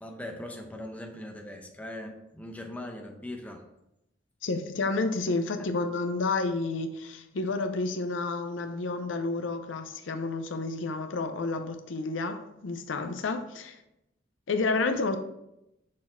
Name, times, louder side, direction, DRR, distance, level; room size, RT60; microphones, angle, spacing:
voice 1, 0.0-3.6, left 1 dB, 10° left, 0.8 m, -40 dB
voice 2, 4.4-13.8 14.5-15.2, left 3 dB, 80° left, 0.6 m, -30 dB
6.4 x 4.1 x 4.3 m
head